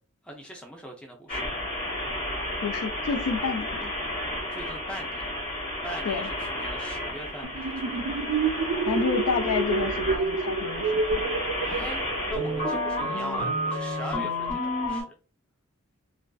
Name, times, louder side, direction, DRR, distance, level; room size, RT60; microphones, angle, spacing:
voice 1, 0.2-1.6 4.5-5.2 5.8-8.2 11.6-12.0 12.3-15.2, right 1 dB, 5° left, 0.4 m, -41 dB
sound 1, 1.3-15.0, left 1 dB, 45° left, 1.4 m, -31 dB
voice 2, 2.6-3.9 6.0-6.3 8.9-11.3, left 5 dB, 85° left, 0.4 m, -29 dB
sound 2, 7.4-12.8, right 4 dB, 70° right, 0.4 m, -29 dB
2.4 x 2.3 x 2.2 m
head